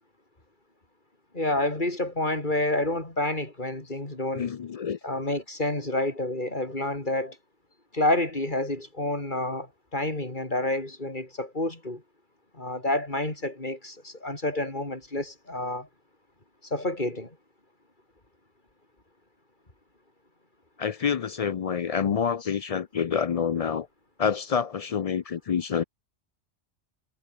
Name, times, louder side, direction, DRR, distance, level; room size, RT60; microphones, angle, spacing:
voice 1, 1.3-4.5 5.0-7.4 7.9-12.0 12.5-15.9 16.7-17.4, left 1 dB, 40° left, 4.4 m, -29 dB
voice 2, 4.3-5.0 20.8-23.9 24.2-25.8, left 7 dB, 60° left, 0.4 m, -27 dB
omnidirectional pair, 1.2 m